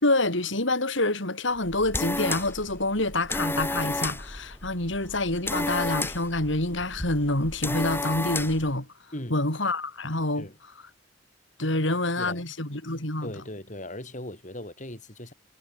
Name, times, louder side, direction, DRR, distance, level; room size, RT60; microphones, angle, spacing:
voice 1, 0.0-8.9 9.3-10.5 11.6-13.3, left 2 dB, 70° left, 5.2 m, -27 dB
sound 1, 1.6-8.7, left 2 dB, 10° left, 7.1 m, -32 dB
voice 2, 9.1-9.4 10.4-10.6 12.2-12.4 13.2-15.3, left 1 dB, 40° left, 7.1 m, -38 dB
head